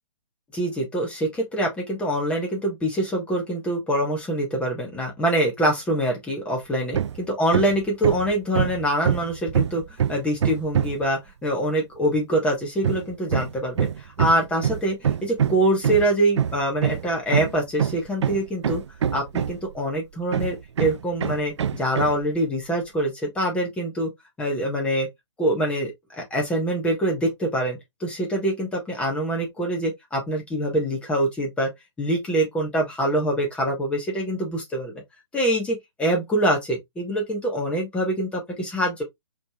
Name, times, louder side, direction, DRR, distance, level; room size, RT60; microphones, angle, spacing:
voice 1, 0.5-9.8 10.1-13.9 14.2-18.8 19.1-24.1 24.4-25.1 25.4-31.7 32.0-34.9 35.3-39.0, right 1 dB, 5° left, 1.3 m, -25 dB
Hammer, 6.9-7.2 7.5-11.1 12.8-19.8 20.3-22.2, right 8 dB, 70° right, 0.4 m, -25 dB
5.1 x 3.3 x 2.3 m
hypercardioid pair, 150°, 15 cm